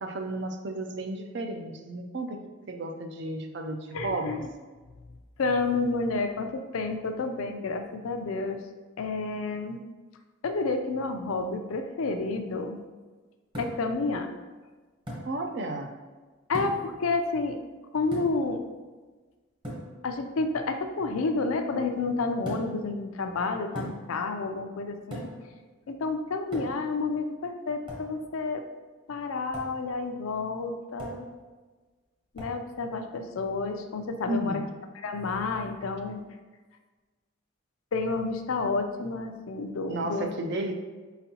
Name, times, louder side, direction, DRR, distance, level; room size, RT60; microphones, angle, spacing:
voice 1, 0.0-2.4 2.7-4.4 15.2-15.9 34.3-34.7 39.9-40.7, right 1 dB, 55° right, 4 dB, 0.4 m, -33 dB
voice 2, 3.9-4.5 5.4-8.6 9.0-9.8 10.4-12.8 13.6-14.3 16.5-17.6 17.9-18.6 20.0-25.3 25.9-28.6 29.1-31.2 32.3-34.6 35.0-36.2 37.9-40.3, left 3 dB, 80° left, 6 dB, 0.4 m, -30 dB
sound 1, 13.5-14.0 15.1-15.3 16.5-16.9 18.1-18.5 19.6-19.9 22.5-22.8 23.8-24.2 25.1-25.5 26.5-26.9 27.9-28.1 29.5-29.8 31.0-31.3 32.4-32.6, equal, 25° right, 0.9 m, -38 dB
4.5 x 4.0 x 2.8 m, 1.3 s
head